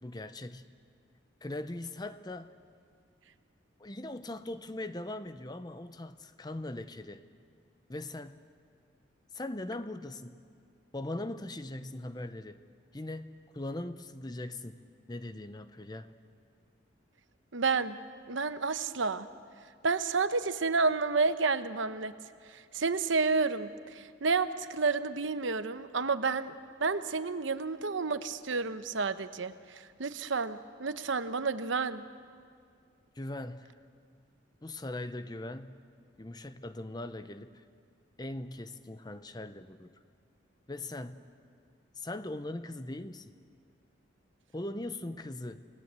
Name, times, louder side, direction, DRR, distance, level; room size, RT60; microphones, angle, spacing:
voice 1, 0.0-0.7 1.4-2.5 3.8-7.2 7.9-8.4 9.3-10.4 10.9-12.6 12.9-14.8 15.1-16.1 33.1-33.7 34.6-35.8 36.2-37.6 38.2-39.9 40.7-41.3 42.0-43.3 44.5-45.7, left 1 dB, 20° left, 11 dB, 0.7 m, -40 dB
voice 2, 17.5-18.0 18.3-19.3 19.8-22.1 22.5-26.5 26.8-32.0, right 4 dB, 75° right, 11 dB, 0.9 m, -30 dB
29.0 x 18.5 x 8.2 m, 2.2 s
head